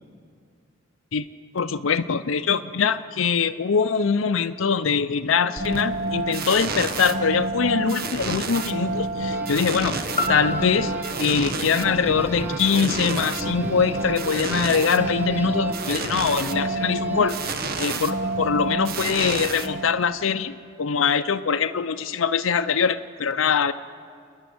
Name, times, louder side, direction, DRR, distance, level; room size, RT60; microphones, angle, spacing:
voice 1, 1.5-10.0 10.3-10.9 11.2-23.7, left 6 dB, 85° left, 9 dB, 0.6 m, -23 dB
sound 1, 5.6-20.2, right 2 dB, 50° right, 1.1 m, -29 dB
Guitar, 9.3-18.6, right 1 dB, 10° right, 0.9 m, -40 dB
sound 2, 10.2-14.2 14.7-14.8, left 1 dB, 30° left, 1.0 m, -33 dB
29.0 x 10.5 x 9.5 m, 2.2 s
head